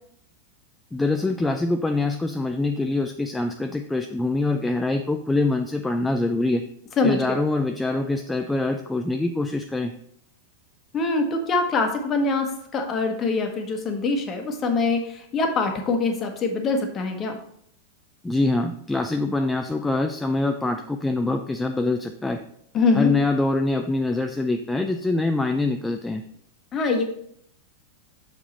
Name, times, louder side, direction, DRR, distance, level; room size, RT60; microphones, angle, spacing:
voice 1, 0.9-6.6 7.0-9.9 18.2-22.4 23.0-26.2, left 2 dB, 10° left, 5 dB, 0.4 m, -24 dB
voice 2, 7.0-7.4 10.9-17.4 22.7-23.1 26.7-27.0, left 3 dB, 25° left, 4 dB, 1.2 m, -24 dB
6.7 x 4.9 x 4.0 m, 0.68 s
figure-of-eight pair, 90°, 0 cm